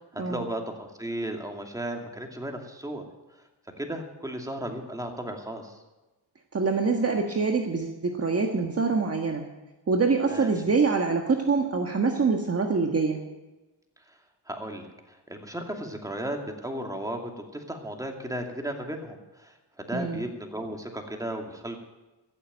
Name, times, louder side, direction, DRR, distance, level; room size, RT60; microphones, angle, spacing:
voice 1, 0.0-3.0 3.8-5.8 10.3-10.5 14.1-14.2 14.5-21.8, right 1 dB, 10° right, 2 dB, 2.5 m, -35 dB
voice 2, 6.5-9.5 9.9-13.2 19.9-20.2, right 4 dB, 35° right, 2 dB, 1.5 m, -25 dB
15.0 x 7.3 x 9.0 m, 1.1 s
cardioid pair, 70°, 43 cm